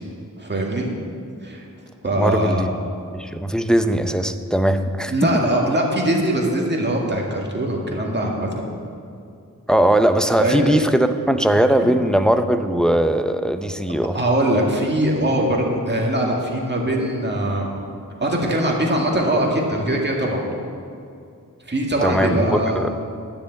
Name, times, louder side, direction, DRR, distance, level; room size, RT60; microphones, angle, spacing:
voice 1, 0.4-0.9 1.4-1.7 2.0-2.6 5.1-8.5 10.4-10.7 11.8-11.9 14.1-17.7 18.2-20.4 21.7-22.8, right 1 dB, 30° right, -1 dB, 2.0 m, -21 dB
voice 2, 2.2-2.7 3.1-5.4 9.7-14.2 22.0-22.9, right 1 dB, ahead, 8 dB, 0.5 m, -19 dB
10.5 x 6.9 x 8.2 m, 2.4 s
wide cardioid pair, 80°, 35 cm